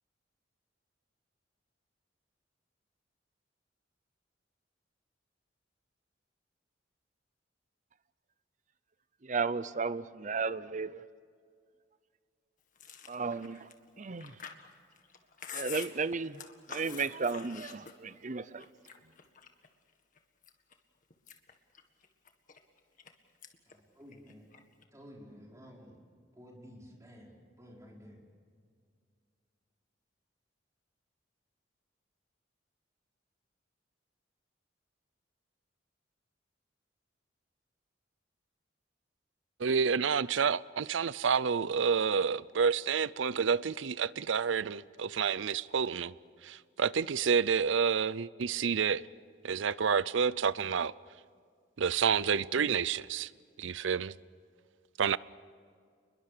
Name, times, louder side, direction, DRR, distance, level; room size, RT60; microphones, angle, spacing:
voice 1, 9.2-11.0 13.1-13.7 14.0-14.4 15.5-16.4 16.7-18.7, right 4 dB, 40° right, 0.7 m, -34 dB
Chewing mastication, 12.8-18.2 18.6-19.7 20.2-20.7 21.1-23.1 23.4-23.7 24.0-24.8, left 7 dB, 45° left, 1.8 m, -47 dB
voice 2, 23.7-24.5 24.9-25.9 26.3-27.3 27.6-28.2, equal, 15° right, 4.9 m, -52 dB
voice 3, 39.6-46.1 46.4-49.1 49.4-50.9 51.8-53.3 53.6-54.1 55.0-55.2, right 6 dB, 85° right, 0.6 m, -29 dB
29.5 x 22.0 x 6.8 m
head